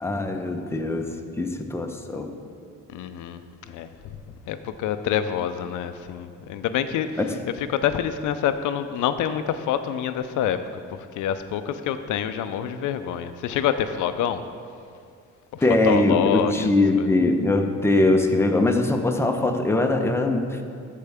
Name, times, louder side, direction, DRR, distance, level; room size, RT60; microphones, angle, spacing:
voice 1, 0.0-2.3 7.2-7.4 15.6-20.6, left 2 dB, 10° left, 4 dB, 0.7 m, -22 dB
voice 2, 2.9-3.4 3.7-4.2 4.5-7.2 7.6-10.6 10.9-14.4 15.5-16.7 17.0-17.1, left 9 dB, 80° left, 10 dB, 0.5 m, -27 dB
13.5 x 4.6 x 3.5 m, 2.3 s
cardioid pair, 90°, 30 cm